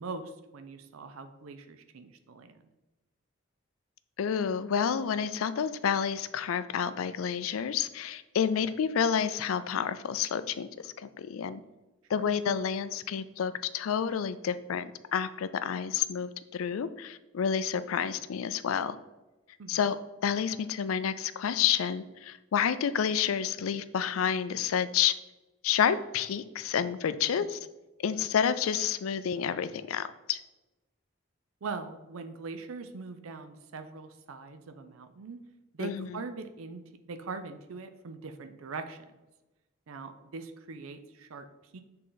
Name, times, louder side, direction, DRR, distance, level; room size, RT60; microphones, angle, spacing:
voice 1, 0.0-2.6 12.1-12.3 19.6-19.8 31.6-35.4 35.7-39.1 39.9-41.5 41.7-41.8, right 4 dB, 85° right, 8 dB, 0.5 m, -41 dB
voice 2, 4.2-11.6 12.1-19.0 19.7-20.0 20.2-25.1 25.6-27.6 28.0-30.4 35.8-36.1, left 8 dB, 85° left, 13 dB, 0.4 m, -29 dB
6.5 x 3.8 x 3.9 m, 1.1 s
head